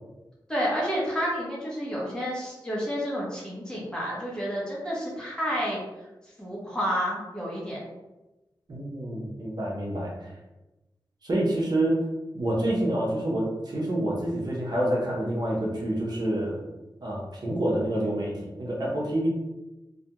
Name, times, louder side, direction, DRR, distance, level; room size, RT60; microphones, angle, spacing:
voice 1, 0.5-5.8 6.4-7.8, equal, 10° left, -5 dB, 0.8 m, -30 dB
voice 2, 8.7-10.1 11.2-12.0 12.3-16.6 17.0-18.3 18.6-19.3, right 1 dB, 60° right, -4 dB, 0.7 m, -27 dB
2.3 x 2.2 x 2.8 m, 1.0 s
wide cardioid pair, 100°, 8 cm